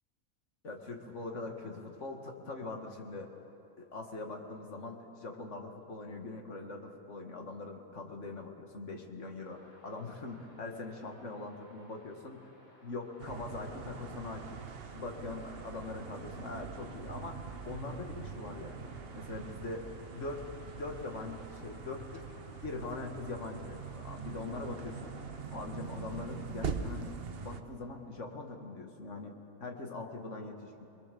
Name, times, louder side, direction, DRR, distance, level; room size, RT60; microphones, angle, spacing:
voice 1, 0.6-3.3 3.8-12.5 12.8-14.6 14.9-19.8 20.1-20.5 20.7-22.2 22.6-25.1 25.5-29.3 29.6-30.9, left 3 dB, 55° left, 3 dB, 2.1 m, -42 dB
sound 1, 9.4-26.3, left 1 dB, 30° left, 3.5 m, -60 dB
sound 2, 13.2-27.6, right 6 dB, 45° right, 1.0 m, -43 dB
22.5 x 21.5 x 6.9 m, 2.7 s
omnidirectional pair, 1.5 m